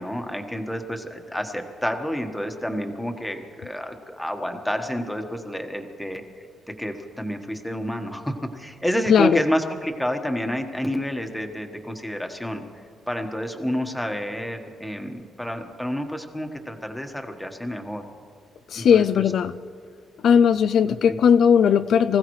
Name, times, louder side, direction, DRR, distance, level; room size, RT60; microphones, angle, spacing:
voice 1, 0.0-6.2 6.8-12.6 13.1-18.0 18.8-19.0 20.8-21.2, equal, 5° left, 4 dB, 1.4 m, -29 dB
voice 2, 9.1-9.4 18.7-19.6 20.2-22.2, left 7 dB, 65° left, 12 dB, 0.3 m, -18 dB
24.5 x 15.5 x 3.2 m, 2.4 s
cardioid pair, 105°, 0 cm